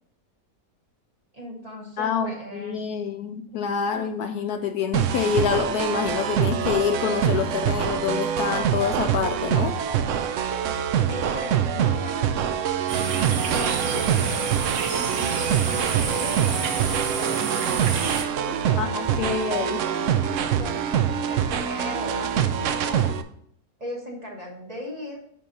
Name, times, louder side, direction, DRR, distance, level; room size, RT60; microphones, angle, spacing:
voice 1, 1.3-2.8 11.1-12.7 13.5-14.5 15.1-17.4 18.4-23.1 23.8-25.2, left 1 dB, 25° right, -1 dB, 1.2 m, -38 dB
voice 2, 2.0-9.7 18.4-19.8, left 7 dB, 70° left, 7 dB, 1.1 m, -27 dB
sound 1, 4.9-23.2, right 8 dB, 80° right, 0.7 m, -25 dB
sound 2, 12.9-18.2, right 6 dB, 65° right, 1.2 m, -28 dB
10.0 x 3.6 x 4.0 m, 0.67 s
omnidirectional pair, 1.8 m